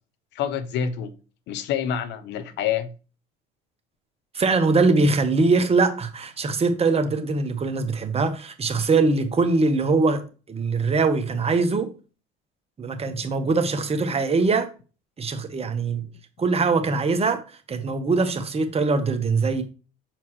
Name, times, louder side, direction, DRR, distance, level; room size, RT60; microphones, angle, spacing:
voice 1, 0.3-1.1 1.5-2.9 13.0-13.4 15.6-16.0, left 8 dB, 65° left, 0.8 m, -28 dB
voice 2, 4.3-10.2 10.5-11.9 12.8-14.7 15.2-16.0 16.4-19.6, right 3 dB, 30° right, 1.1 m, -22 dB
7.0 x 4.4 x 3.2 m
supercardioid pair, 75°, 20 cm